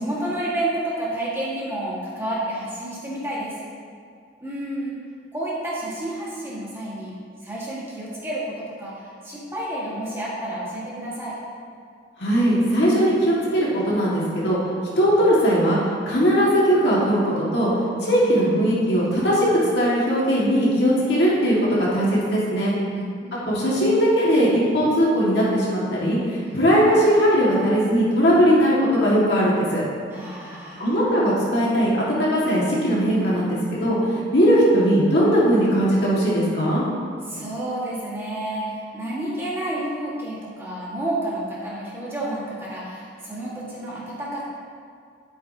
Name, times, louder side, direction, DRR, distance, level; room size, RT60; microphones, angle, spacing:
voice 1, 0.0-3.6 4.4-5.0 5.3-7.2 7.4-11.3 18.0-18.5 22.8-23.5 26.4-26.6 30.1-30.9 37.3-44.4, right 1 dB, 15° right, -7 dB, 1.7 m, -30 dB
voice 2, 12.2-14.6 15.0-15.8 16.1-17.7 18.0-22.7 23.5-29.8 30.8-32.0 32.3-36.8, equal, 70° left, -6 dB, 2.0 m, -19 dB
10.0 x 8.4 x 2.8 m, 2.2 s
head